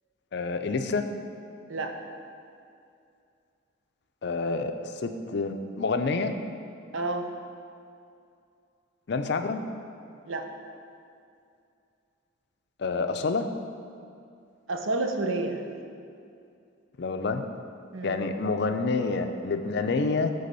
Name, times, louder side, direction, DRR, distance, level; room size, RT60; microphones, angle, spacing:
voice 1, 0.3-1.1 4.2-6.4 9.1-9.6 12.8-13.5 17.0-17.4 18.0-20.3, left 3 dB, 55° left, 7 dB, 0.5 m, -28 dB
voice 2, 6.9-7.3 10.3-10.5 14.7-15.6 17.9-18.2, right 2 dB, 75° right, 5 dB, 0.7 m, -29 dB
9.4 x 3.4 x 6.8 m, 2.5 s
head